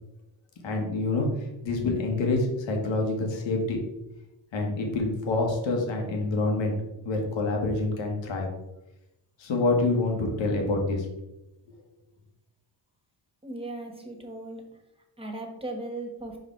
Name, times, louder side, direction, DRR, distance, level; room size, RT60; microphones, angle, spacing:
voice 1, 0.6-3.8 4.5-6.7 7.0-8.5 9.4-11.1, left 2 dB, 90° left, 1 dB, 1.6 m, -27 dB
voice 2, 13.4-14.6 15.2-16.4, right 2 dB, 10° right, 3 dB, 1.6 m, -37 dB
5.0 x 5.0 x 4.6 m, 0.90 s
cardioid pair, 75°, 44 cm